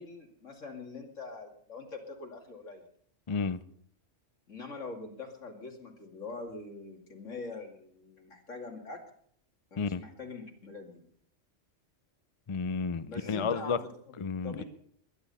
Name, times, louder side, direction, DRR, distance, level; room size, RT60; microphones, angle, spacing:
voice 1, 0.0-2.9 4.5-9.0 9.7-11.0 13.1-14.1 14.4-14.6, left 3 dB, 80° left, 2.8 m, -43 dB
voice 2, 3.3-3.6 9.8-10.0 12.5-13.8 14.2-14.6, left 5 dB, 35° left, 0.5 m, -31 dB
21.5 x 10.5 x 5.5 m
omnidirectional pair, 1.3 m